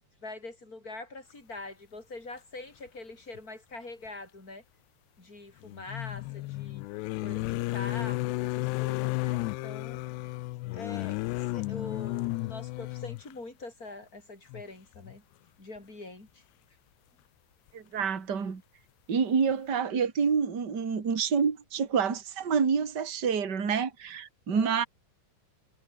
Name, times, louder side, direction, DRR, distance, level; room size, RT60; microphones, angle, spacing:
voice 1, 0.2-4.6 5.2-6.8 7.2-10.0 10.7-15.2 15.6-16.4 24.5-24.7, left 2 dB, 20° left, 6.7 m, -44 dB
sound 1, 3.3-3.4 5.6-13.3 14.5-14.6 15.0-15.1, left 20 dB, 80° left, 2.7 m, -33 dB
voice 2, 17.7-18.6 19.1-24.8, right 6 dB, 30° right, 2.8 m, -28 dB
omnidirectional pair, 5.1 m